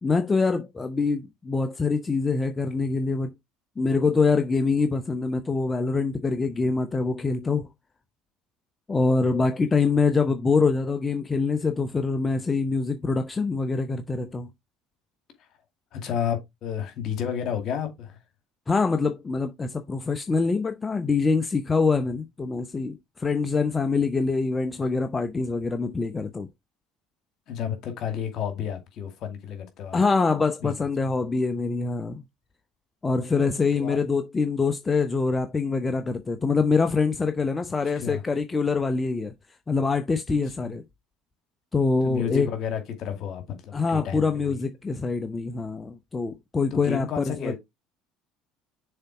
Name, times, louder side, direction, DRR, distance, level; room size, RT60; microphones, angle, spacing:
voice 1, 0.0-3.3 3.8-7.7 8.9-14.5 18.7-26.5 29.9-32.2 33.0-39.3 39.7-40.8 41.7-42.5 43.7-47.5, left 4 dB, 20° left, 0.8 m, -25 dB
voice 2, 15.9-18.2 27.5-30.0 30.6-30.7 33.7-34.0 37.9-38.2 40.3-40.7 42.0-44.6 46.7-47.5, left 8 dB, 50° left, 2.3 m, -31 dB
6.7 x 4.1 x 4.7 m
hypercardioid pair, 65°, 0 cm